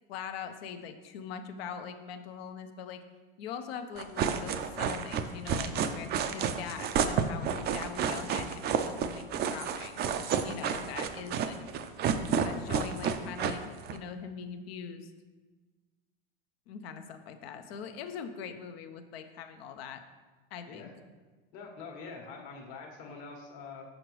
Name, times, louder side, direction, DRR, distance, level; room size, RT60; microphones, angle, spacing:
voice 1, 0.1-3.0 3.4-10.0 10.4-11.6 12.4-13.6 13.9-15.1 16.7-20.0 20.5-20.9, left 7 dB, 80° left, 8 dB, 0.6 m, -42 dB
sound 1, 4.0-14.0, right 7 dB, 35° right, 0.4 m, -30 dB
voice 2, 21.5-23.8, left 4 dB, 60° left, 1 dB, 1.3 m, -45 dB
6.4 x 5.0 x 3.1 m, 1.3 s
hypercardioid pair, 100°, 30 cm